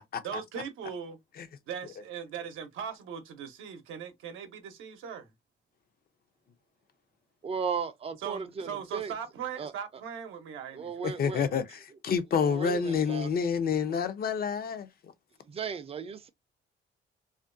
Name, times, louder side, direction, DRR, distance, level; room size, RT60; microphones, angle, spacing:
voice 1, 0.2-1.2 1.7-5.3 8.2-11.5, right 7 dB, 85° right, 0.7 m, -39 dB
voice 2, 7.4-9.1 9.6-9.7 10.7-11.6 12.3-13.3 15.5-16.3, right 6 dB, 30° right, 0.4 m, -36 dB
voice 3, 11.0-15.1, left 6 dB, 50° left, 0.5 m, -29 dB
2.5 x 2.2 x 2.4 m
cardioid pair, 90°, 20 cm